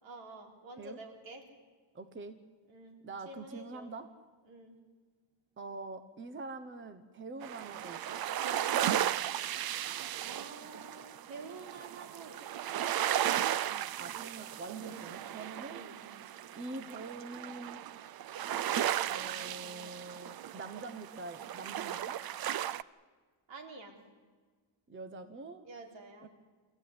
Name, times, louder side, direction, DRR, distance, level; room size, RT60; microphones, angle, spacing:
voice 1, 0.0-1.5 2.7-3.0 3.3-3.9 4.5-4.7 10.2-12.4 13.0-13.2 14.8-15.1 15.7-16.0 23.5-24.0 25.6-26.3, right 3 dB, 80° right, 3 dB, 4.1 m, -49 dB
voice 2, 1.9-2.4 3.0-4.1 5.6-8.2 14.0-15.8 16.6-17.8 19.1-22.2 24.9-25.6 26.2-26.3, right 3 dB, 25° right, 10 dB, 1.1 m, -44 dB
sound 1, 7.4-22.8, right 11 dB, 55° right, 0.6 m, -35 dB
25.5 x 15.5 x 9.9 m, 1.5 s
wide cardioid pair, 175°, 44 cm